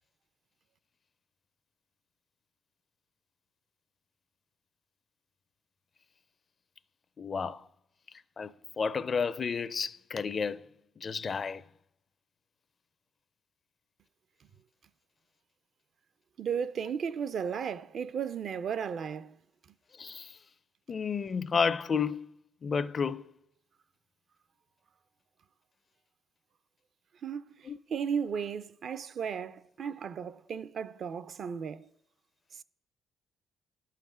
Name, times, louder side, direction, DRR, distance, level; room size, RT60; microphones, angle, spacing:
voice 1, 7.2-7.6 8.4-10.6 11.0-11.6 20.0-20.4 20.9-22.3 22.6-23.2 27.6-27.8, left 5 dB, 40° left, 0.4 m, -31 dB
voice 2, 16.4-19.3 27.2-27.5 27.9-31.9, right 7 dB, 60° right, 0.5 m, -34 dB
11.5 x 5.7 x 7.3 m
cardioid pair, 90°, 0 cm